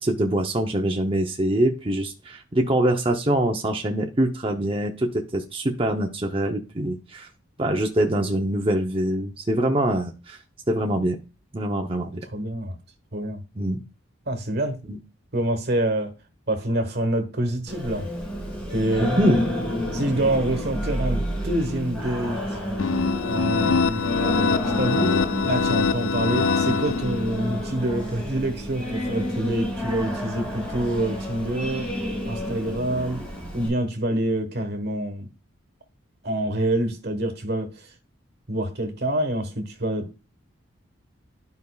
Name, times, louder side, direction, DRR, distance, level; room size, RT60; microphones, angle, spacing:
voice 1, 0.0-7.3 7.6-10.4 10.7-11.2 11.5-12.3 13.6-13.8 14.9-15.0 19.0-19.4, right 1 dB, 25° right, 0.7 m, -24 dB
voice 2, 12.3-12.7 13.1-13.4 14.3-14.8 15.3-16.1 16.5-18.1 18.7-19.1 19.9-22.4 23.3-24.0 24.8-31.9 32.3-33.2 33.5-35.3 36.2-37.7 38.5-40.2, right 1 dB, 50° right, 1.3 m, -26 dB
Singing, 17.7-33.7, equal, 5° left, 3.1 m, -30 dB
sound 1, 22.8-27.5, left 5 dB, 80° left, 0.4 m, -24 dB
12.0 x 5.3 x 2.3 m
head